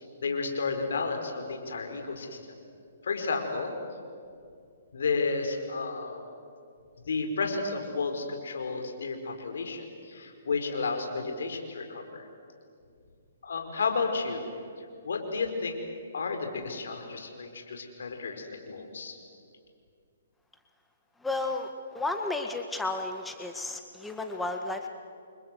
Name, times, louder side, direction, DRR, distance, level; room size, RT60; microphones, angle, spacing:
voice 1, 0.2-2.4 3.0-3.7 4.9-6.2 7.0-12.3 13.4-14.5 15.0-15.8 16.1-19.2, left 4 dB, 65° left, 5 dB, 5.0 m, -32 dB
voice 2, 21.2-24.9, left 2 dB, 5° left, 4 dB, 1.7 m, -33 dB
30.0 x 25.0 x 7.8 m, 2.4 s
figure-of-eight pair, 130°, 0 cm